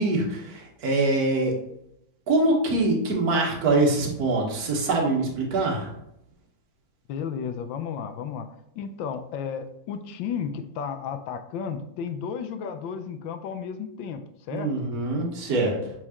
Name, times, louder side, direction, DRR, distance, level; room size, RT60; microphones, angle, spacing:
voice 1, 0.0-1.5 2.3-5.9 14.5-15.7, right 2 dB, 50° right, 0 dB, 1.7 m, -24 dB
voice 2, 7.1-8.5 8.8-14.7 15.6-15.9, left 7 dB, 75° left, 8 dB, 1.3 m, -33 dB
7.3 x 4.8 x 2.9 m, 0.78 s
omnidirectional pair, 2.2 m